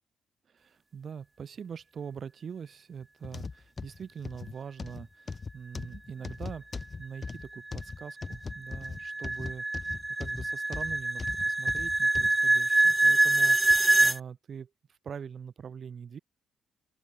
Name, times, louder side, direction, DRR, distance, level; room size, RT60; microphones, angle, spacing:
voice 1, 0.5-6.7 7.0-16.2, right 7 dB, 50° right, 7.9 m, -43 dB
sound 1, 3.2-12.4 12.9-13.0 13.7-13.8, left 4 dB, 30° left, 4.2 m, -40 dB
sound 2, 7.0-14.2, right 2 dB, 15° right, 0.8 m, -25 dB
open air
cardioid pair, 90°, 0 cm